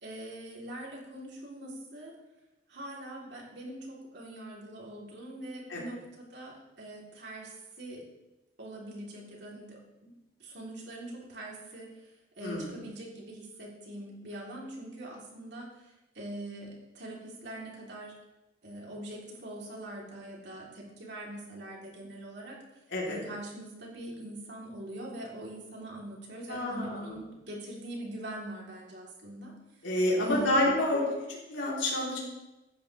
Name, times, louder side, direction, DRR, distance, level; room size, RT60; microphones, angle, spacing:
voice 1, 0.0-2.2 2.7-8.0 8.6-10.1 10.4-12.1 12.4-18.1 18.6-22.6 23.0-29.5 30.2-30.6, right 1 dB, 60° right, -3 dB, 3.6 m, -43 dB
voice 2, 26.5-27.2 29.8-31.0 31.3-32.2, left 1 dB, 75° left, -5 dB, 3.8 m, -28 dB
15.5 x 10.0 x 3.5 m, 1.0 s
head